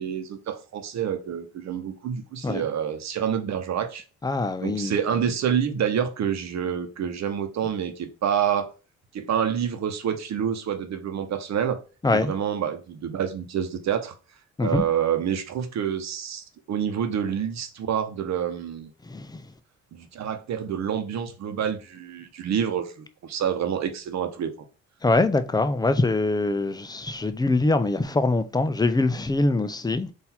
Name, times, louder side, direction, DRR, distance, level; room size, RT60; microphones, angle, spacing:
voice 1, 0.0-4.0 4.6-8.7 9.1-11.8 12.1-14.1 14.6-18.9 19.9-24.5, right 8 dB, 65° right, 0.9 m, -27 dB
voice 2, 4.2-4.9 12.0-12.3 14.6-14.8 19.0-19.4 25.0-30.1, left 2 dB, 15° left, 0.5 m, -23 dB
3.9 x 2.7 x 4.3 m
cardioid pair, 90°, 30 cm